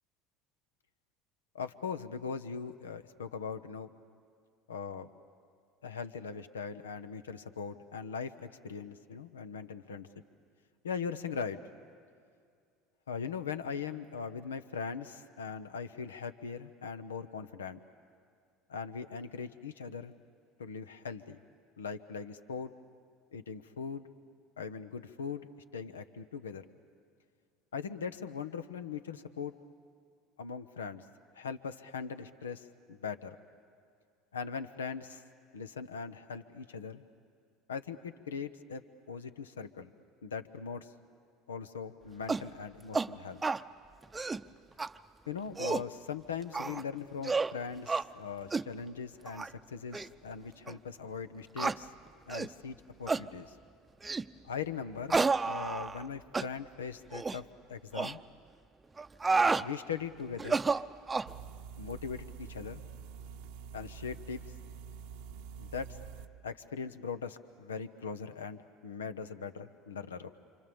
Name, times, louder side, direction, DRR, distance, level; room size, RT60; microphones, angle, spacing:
voice 1, 1.5-3.9 4.7-5.1 5.8-10.1 10.8-11.6 13.1-17.8 18.7-20.1 20.6-21.4 21.8-22.7 23.3-24.1 24.6-26.6 27.7-29.5 30.4-31.0 31.3-33.4 34.3-35.2 35.5-37.0 37.7-38.8 39.1-39.9 40.2-40.9 41.5-43.4 45.3-51.9 52.3-53.6 54.4-58.2 59.6-60.6 61.8-62.8 63.7-64.4 65.6-65.9 66.4-70.3, left 6 dB, 85° left, 11 dB, 0.9 m, -40 dB
sound 1, 42.3-42.5 42.9-43.1 43.4-43.6 44.0-44.4 44.8-44.9 45.4-45.9 46.5-46.8 47.2-47.5 47.9-48.1 48.5-48.7 49.3-49.5 49.9-50.1 50.7-50.8 51.6-51.8 52.3-52.5 53.1-53.3 54.0-54.3 55.1-56.1 56.3-56.5 57.1-57.4 57.9-58.1 59.0-59.7 60.4-61.3, right 4 dB, 20° right, 0.7 m, -30 dB
sound 2, 61.3-66.3, right 6 dB, 65° right, 0.9 m, -47 dB
28.5 x 26.5 x 7.1 m, 2.3 s
hypercardioid pair, 70°, 0 cm